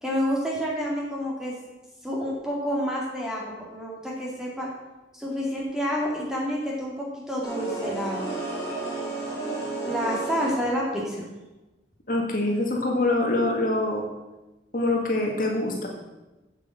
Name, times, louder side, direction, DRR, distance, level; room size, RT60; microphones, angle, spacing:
voice 1, 0.0-1.5 2.0-4.7 5.1-8.3 9.8-11.3, equal, 5° right, -3 dB, 2.2 m, -29 dB
sound 1, 7.4-10.9, right 3 dB, 15° left, 3.5 m, -32 dB
voice 2, 12.1-14.0 14.7-15.9, left 2 dB, 45° left, 0 dB, 1.8 m, -24 dB
8.2 x 7.2 x 7.6 m, 1.1 s
head